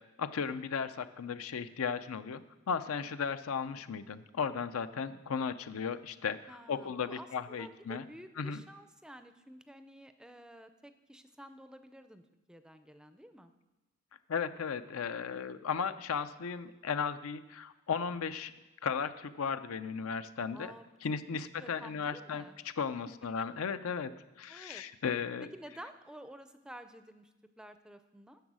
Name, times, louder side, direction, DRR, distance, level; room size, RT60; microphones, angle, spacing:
voice 1, 0.2-2.4 2.7-8.0 8.4-8.6 14.3-18.5 18.8-20.7 21.0-22.4 22.8-24.1 24.4-25.5, left 6 dB, 80° left, 12 dB, 0.5 m, -35 dB
voice 2, 6.5-13.5 20.5-20.9 21.3-22.6 24.5-24.8 25.4-28.4, equal, 5° right, 9 dB, 0.4 m, -51 dB
10.5 x 7.1 x 6.1 m, 1.1 s
head